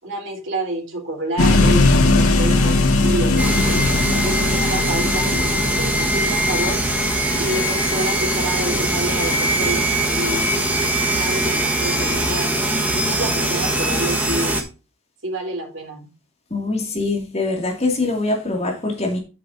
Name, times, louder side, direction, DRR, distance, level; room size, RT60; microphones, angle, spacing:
voice 1, 0.0-3.8 4.1-6.9 7.4-10.4 11.0-12.5 12.9-14.6 15.2-16.1 16.6-16.7, right 2 dB, 60° right, 3.5 m, -28 dB
sound 1, 1.4-9.4, left 2 dB, 90° left, 1.8 m, -20 dB
sound 2, 3.4-14.6, right 1 dB, 5° right, 1.3 m, -21 dB
voice 2, 16.5-19.2, left 2 dB, 30° left, 2.2 m, -23 dB
9.3 x 8.3 x 2.6 m
head